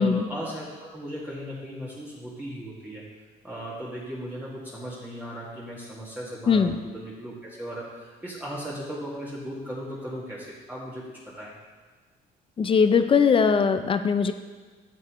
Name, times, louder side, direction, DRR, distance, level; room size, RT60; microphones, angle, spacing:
voice 1, 0.0-3.0 3.4-11.6, equal, 10° right, -7 dB, 1.9 m, -37 dB
voice 2, 12.6-14.3, left 6 dB, 30° left, 9 dB, 0.5 m, -20 dB
12.0 x 7.4 x 3.1 m, 1.4 s
cardioid pair, 110°, 17 cm